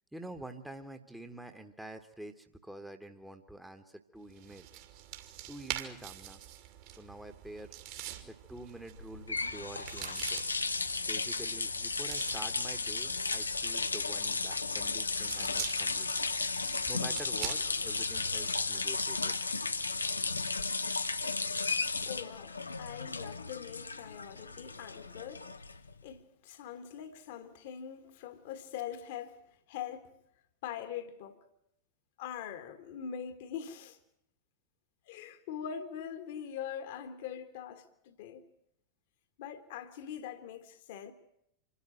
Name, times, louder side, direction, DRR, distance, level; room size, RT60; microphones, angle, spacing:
voice 1, 0.1-4.7 5.5-6.4 6.9-7.7 8.3-10.4 11.1-16.1 16.6-19.4, right 1 dB, 5° right, 1.3 m, -47 dB
sound 1, 4.3-18.9, right 12 dB, 50° right, 2.4 m, -46 dB
sound 2, 9.0-26.0, left 4 dB, 80° left, 0.8 m, -34 dB
voice 2, 22.0-25.8 26.0-29.4 29.7-30.1 30.6-31.4 32.2-34.0 35.1-38.4 39.4-41.1, left 8 dB, 50° left, 1.5 m, -43 dB
26.5 x 12.5 x 8.9 m
figure-of-eight pair, 90°, 0 cm